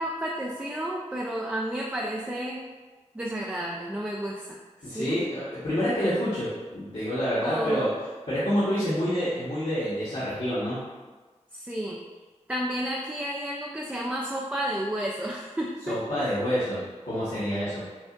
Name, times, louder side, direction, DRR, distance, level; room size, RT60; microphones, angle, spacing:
voice 1, 0.0-2.6 3.1-5.2 7.4-7.9 11.5-12.0 12.5-16.3, right 1 dB, 10° right, -2 dB, 0.4 m, -31 dB
voice 2, 4.8-7.9 8.3-10.8 15.9-17.9, equal, 65° left, -13 dB, 1.3 m, -28 dB
5.9 x 2.4 x 2.5 m, 1.3 s
wide cardioid pair, 50°, 12 cm